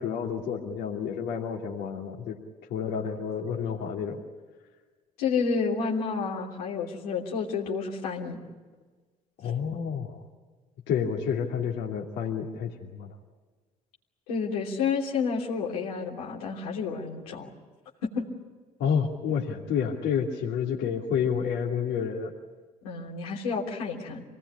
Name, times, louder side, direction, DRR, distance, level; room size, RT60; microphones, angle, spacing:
voice 1, 0.0-2.4 2.7-4.2 9.4-10.2 10.9-13.1 18.8-22.3, left 7 dB, 70° left, -1 dB, 2.8 m, -29 dB
voice 2, 5.2-8.4 14.3-17.5 18.0-18.2 22.8-24.2, left 5 dB, 90° left, -3 dB, 3.1 m, -30 dB
26.0 x 19.0 x 9.9 m, 1.3 s
hypercardioid pair, 55°, 19 cm